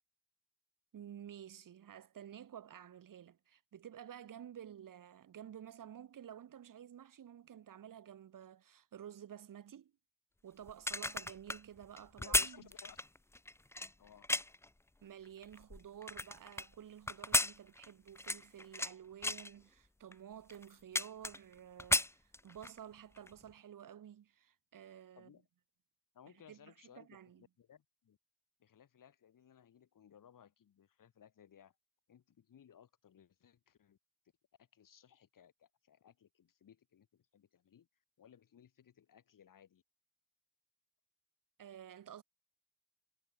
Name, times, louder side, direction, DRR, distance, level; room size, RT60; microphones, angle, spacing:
voice 1, 0.9-9.9 10.4-12.7 15.0-25.3 26.5-27.4 41.6-42.2, right 9 dB, 85° right, 1.7 m, -52 dB
sound 1, 10.7-14.7 15.2-16.7 17.1-18.9 19.2-19.5 20.1-20.2 20.5-21.5 21.8-22.8 23.2-23.3, left 2 dB, 10° left, 0.4 m, -35 dB
voice 2, 12.2-13.0 14.0-14.3 25.2-25.4 26.1-28.2 28.6-31.8 32.1-34.0 34.6-37.9 38.2-39.8, left 9 dB, 90° left, 7.0 m, -61 dB
cardioid pair, 40°, 32 cm